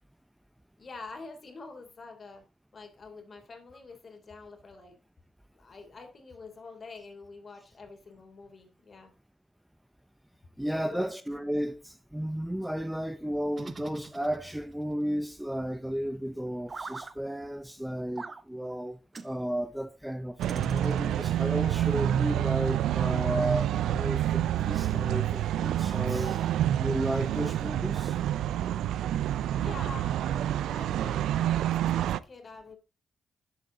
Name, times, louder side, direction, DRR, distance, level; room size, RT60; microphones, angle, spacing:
voice 1, 0.8-2.4 2.7-4.9 5.5-9.1 10.7-11.1 29.5-31.5 31.8-32.8, left 3 dB, 45° left, 3.4 m, -46 dB
voice 2, 10.6-26.5 26.8-28.2, equal, 5° right, 0.8 m, -33 dB
sound 1, 13.5-14.8 16.7-17.1 18.2-18.4 19.1-19.3 20.4-21.3, right 4 dB, 40° right, 0.9 m, -42 dB
sound 2, 20.4-32.2, right 11 dB, 90° right, 0.4 m, -28 dB
10.5 x 7.2 x 3.9 m
cardioid pair, 70°, 0 cm